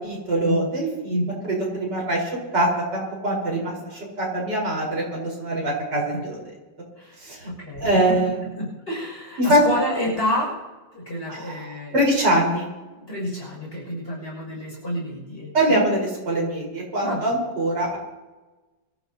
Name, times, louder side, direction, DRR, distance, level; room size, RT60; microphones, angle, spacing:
voice 1, 0.0-6.4 7.2-7.5 7.8-8.3 9.4-9.6 11.3-11.7 11.9-12.7 15.5-18.0, right 1 dB, 65° right, -3 dB, 5.3 m, -23 dB
voice 2, 7.0-10.6 10.9-11.9 12.9-15.9 17.0-17.3, left 1 dB, 30° left, -4 dB, 6.7 m, -29 dB
24.5 x 14.0 x 2.9 m, 1.2 s
omnidirectional pair, 2.0 m